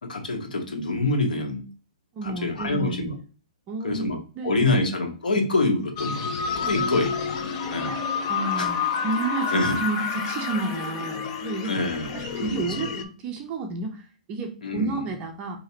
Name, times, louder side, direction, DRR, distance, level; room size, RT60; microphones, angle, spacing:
voice 1, 0.0-1.7 2.2-3.1 3.8-4.2 4.4-6.3 6.6-7.1 7.7-8.0 8.6-8.7 9.5-9.8 11.6-12.7 14.6-15.1, left 2 dB, 90° left, 3 dB, 1.2 m, -26 dB
voice 2, 2.1-3.2 3.7-4.1 4.4-4.8 6.6-7.0 7.8-8.0 8.3-11.7 12.1-15.6, right 3 dB, 25° right, 4 dB, 0.6 m, -31 dB
sound 1, 6.0-13.0, left 5 dB, 35° left, 0.6 m, -29 dB
4.7 x 2.8 x 2.8 m, 0.38 s
hypercardioid pair, 155°, 4 cm